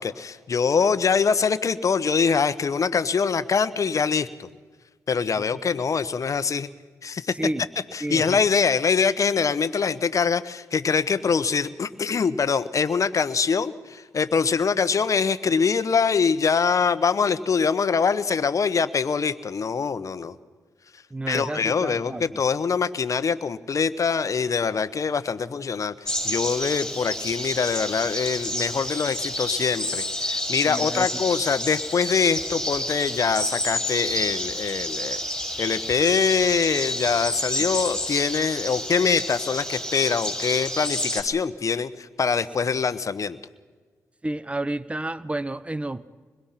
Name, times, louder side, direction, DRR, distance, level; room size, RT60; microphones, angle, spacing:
voice 1, 0.0-4.5 5.1-6.7 7.0-7.3 7.9-20.4 21.3-25.9 26.2-35.2 35.6-43.4, left 5 dB, 55° left, 14 dB, 1.2 m, -24 dB
voice 2, 7.3-7.6 8.0-8.4 21.1-22.4 30.7-31.2 44.2-46.1, right 1 dB, 20° right, 16 dB, 1.2 m, -31 dB
sound 1, 26.0-41.2, left 1 dB, 5° left, 6.5 m, -30 dB
25.5 x 21.5 x 6.0 m, 1.4 s
supercardioid pair, 45°, 6 cm